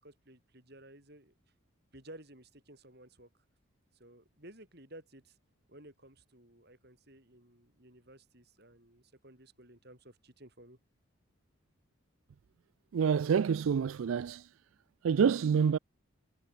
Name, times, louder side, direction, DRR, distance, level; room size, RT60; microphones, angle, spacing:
voice 1, 0.0-1.4 1.9-3.3 3.9-5.4 5.7-10.8, right 1 dB, 50° right, 7.6 m, -55 dB
voice 2, 12.9-14.5 15.0-15.8, right 6 dB, 80° right, 0.4 m, -27 dB
head